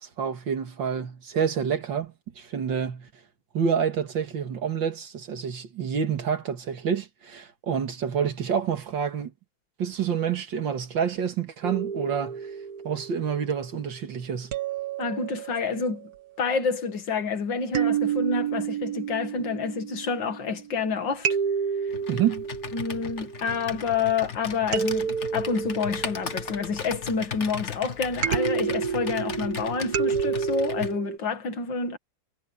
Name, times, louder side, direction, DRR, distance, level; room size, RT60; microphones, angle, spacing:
voice 1, 0.0-3.1 3.5-9.3 9.8-12.5 12.8-14.5 22.1-22.4, right 7 dB, 70° right, 2.5 m, -28 dB
sound 1, 11.6-13.7 14.5-16.0 17.7-20.6 21.2-23.8 24.7-26.9 28.2-31.2, right 7 dB, 55° right, 1.7 m, -30 dB
voice 2, 15.0-16.1 16.4-21.3 22.7-32.0, left 5 dB, 70° left, 2.4 m, -28 dB
Computer keyboard, 21.9-31.0, left 7 dB, 40° left, 1.6 m, -37 dB
omnidirectional pair, 2.1 m